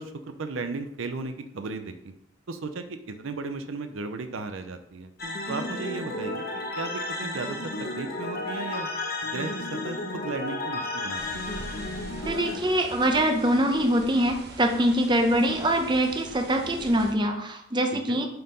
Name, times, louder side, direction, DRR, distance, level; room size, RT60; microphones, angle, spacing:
voice 1, 0.0-2.1 2.5-5.1 5.5-7.6 7.9-8.9 9.2-11.5 17.9-18.2, right 3 dB, 70° right, 8 dB, 0.6 m, -35 dB
sound 1, 5.2-12.6, left 2 dB, 45° left, 0.8 m, -33 dB
sound 2, 11.1-17.1, right 2 dB, 50° right, 0.9 m, -43 dB
voice 2, 12.2-18.3, right 1 dB, 20° right, 4 dB, 0.7 m, -24 dB
6.5 x 4.5 x 5.4 m, 0.77 s
head